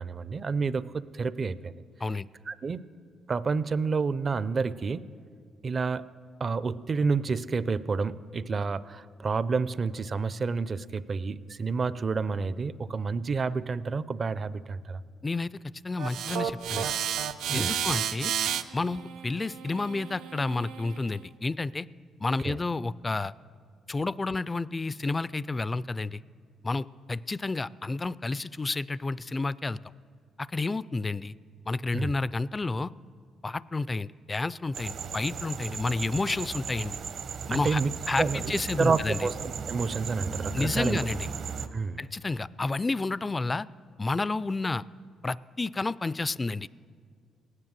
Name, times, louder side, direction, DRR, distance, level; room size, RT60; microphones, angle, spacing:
voice 1, 0.0-1.8 2.5-2.8 3.3-5.1 5.6-6.1 6.4-15.0 17.5-17.8 22.4-22.6 31.9-32.1 37.5-37.9 38.2-38.4 38.8-39.4 39.7-41.0 41.7-42.0, right 4 dB, 40° right, 16 dB, 0.5 m, -29 dB
voice 2, 15.8-16.9 17.5-18.3 18.7-21.9 22.2-23.3 23.9-26.2 26.6-29.8 30.4-31.4 31.7-32.9 33.4-37.0 37.5-37.8 38.1-39.2 40.5-41.3 42.0-43.7 44.0-44.8 45.2-46.7, left 3 dB, 25° left, 20 dB, 0.3 m, -30 dB
sound 1, 16.0-21.2, right 9 dB, 80° right, 0.6 m, -32 dB
sound 2, 34.7-41.7, right 6 dB, 60° right, 1.0 m, -36 dB
17.0 x 9.7 x 7.5 m, 2.2 s
cardioid pair, 90°, 0 cm